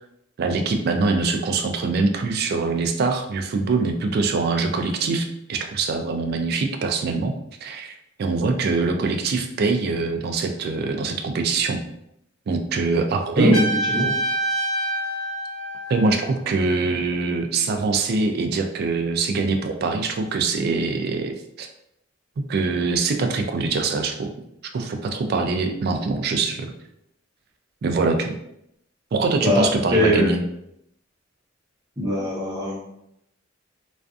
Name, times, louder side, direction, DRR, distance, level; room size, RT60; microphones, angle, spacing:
voice 1, 0.4-11.8 12.5-13.6 15.9-21.7 22.4-24.3 24.7-26.7 27.8-28.3 29.1-30.4, right 3 dB, 55° right, 5 dB, 0.3 m, -23 dB
voice 2, 13.4-14.1 29.4-30.3 32.0-32.8, left 1 dB, 20° right, -5 dB, 0.7 m, -21 dB
Trumpet, 13.5-16.4, right 2 dB, 25° left, 0.6 m, -26 dB
2.4 x 2.4 x 2.3 m, 0.79 s
head